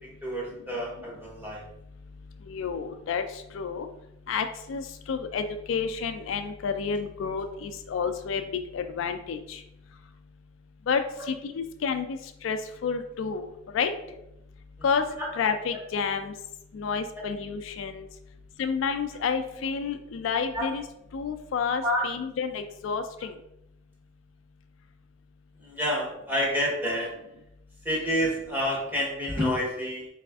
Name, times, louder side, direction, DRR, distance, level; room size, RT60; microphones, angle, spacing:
voice 1, 0.0-1.6 15.2-15.3 17.1-17.2 20.5-20.7 21.8-22.0 25.6-27.1 27.8-30.1, equal, 10° right, -4 dB, 1.1 m, -28 dB
voice 2, 2.4-3.9 4.3-9.6 10.9-13.9 14.8-15.1 15.4-16.3 16.7-18.1 18.6-20.9 21.1-23.4, left 6 dB, 70° left, 8 dB, 0.3 m, -30 dB
4.1 x 2.4 x 3.4 m, 0.82 s
head